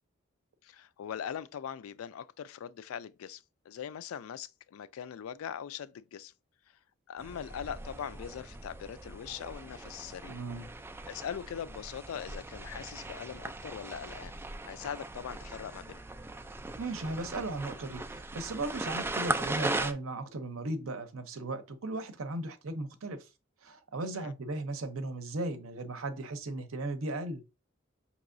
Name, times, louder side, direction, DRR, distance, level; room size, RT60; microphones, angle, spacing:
voice 1, 0.6-6.3 7.1-10.3 11.1-14.3 14.6-16.0 24.1-24.3, left 8 dB, 75° left, 0.3 m, -41 dB
sound 1, 7.2-19.9, right 2 dB, 10° right, 0.3 m, -39 dB
voice 2, 10.3-10.7 16.8-23.3 23.6-27.4, right 2 dB, 75° right, 0.7 m, -36 dB
5.3 x 2.9 x 2.5 m
head